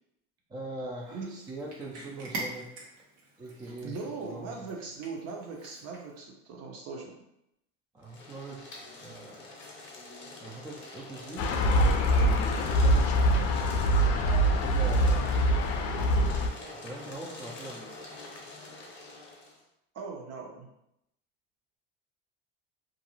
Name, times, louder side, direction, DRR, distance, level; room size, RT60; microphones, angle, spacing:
voice 1, 0.5-2.7 3.4-4.0 4.2-4.6 7.9-9.6 10.4-11.5 12.1-13.4 14.2-15.4 16.7-17.9, right 2 dB, 10° right, -2 dB, 0.4 m, -42 dB
Cat, 1.0-6.2, right 2 dB, 90° right, 1.0 m, -44 dB
voice 2, 3.8-7.2 19.9-20.7, right 4 dB, 45° right, 1 dB, 0.7 m, -39 dB
sound 1, 8.0-19.6, left 2 dB, 35° left, 0.8 m, -45 dB
sound 2, 11.4-16.5, equal, 65° left, 0.5 m, -24 dB
2.5 x 2.3 x 3.0 m, 0.81 s
supercardioid pair, 110°, 34 cm